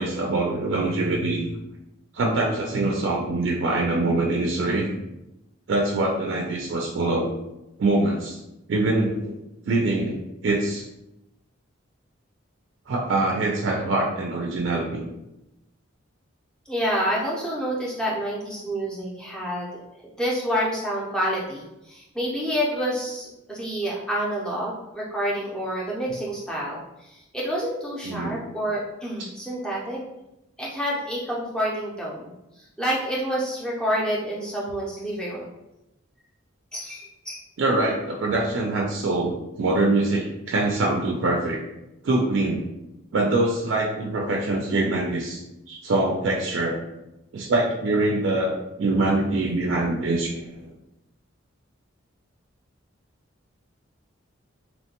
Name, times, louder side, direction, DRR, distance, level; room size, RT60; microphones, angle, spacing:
voice 1, 0.0-1.6 2.1-4.9 5.7-7.3 7.8-8.4 8.7-9.4 9.7-10.9 12.9-15.1 28.0-28.4 29.2-29.3 37.6-41.6 42.0-42.7 43.1-46.8 47.3-50.7, right 2 dB, 60° right, -1 dB, 0.3 m, -24 dB
voice 2, 16.7-19.8 20.2-30.0 30.6-35.5 36.7-37.4, equal, 5° left, -5 dB, 0.5 m, -28 dB
2.9 x 2.1 x 2.8 m, 0.92 s
head